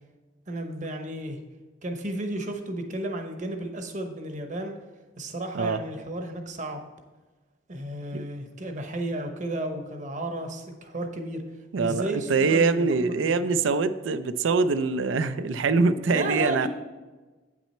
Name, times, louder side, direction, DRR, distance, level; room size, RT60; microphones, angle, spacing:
voice 1, 0.5-1.4 1.8-4.8 5.2-6.9 7.7-11.4 11.8-13.6 16.1-16.7, right 1 dB, 40° right, 5 dB, 0.9 m, -33 dB
voice 2, 11.7-16.7, right 4 dB, 85° right, 13 dB, 0.4 m, -24 dB
8.6 x 6.1 x 4.3 m, 1.2 s
head